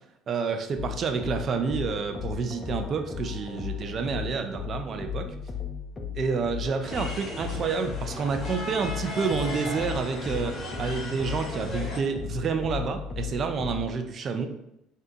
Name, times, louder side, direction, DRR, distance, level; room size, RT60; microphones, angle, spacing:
voice 1, 0.3-5.3 6.1-14.5, right 5 dB, 45° right, 6 dB, 0.4 m, -29 dB
sound 1, 0.8-13.9, left 7 dB, 30° left, 0.4 m, -36 dB
sound 2, 6.8-12.0, left 1 dB, 45° left, 0.8 m, -37 dB
2.7 x 2.3 x 2.5 m, 0.81 s
hypercardioid pair, 60°, 0 cm